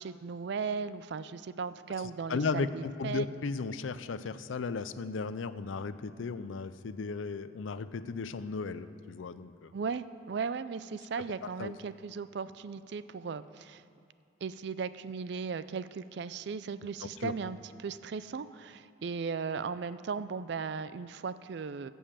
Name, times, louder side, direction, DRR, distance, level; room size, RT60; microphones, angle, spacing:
voice 1, 0.0-3.3 9.7-13.8 14.4-21.9, right 5 dB, 60° right, 14 dB, 0.4 m, -37 dB
voice 2, 2.3-9.7 11.6-11.7 17.2-17.3, left 4 dB, 85° left, 14 dB, 0.5 m, -35 dB
15.0 x 5.5 x 7.4 m, 2.4 s
head